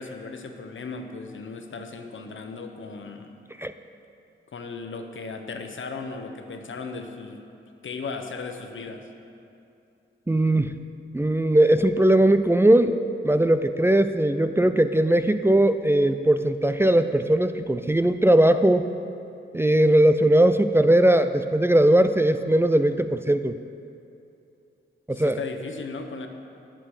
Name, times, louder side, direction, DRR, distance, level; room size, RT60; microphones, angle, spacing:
voice 1, 0.0-3.3 4.5-7.4 7.8-9.1 25.1-26.3, left 4 dB, 75° left, 5 dB, 1.1 m, -36 dB
voice 2, 10.3-10.8 11.1-13.0 13.2-18.9 19.5-23.6 25.1-25.4, right 1 dB, 10° right, 9 dB, 0.4 m, -19 dB
19.5 x 7.7 x 4.9 m, 2.7 s
wide cardioid pair, 95°, 20 cm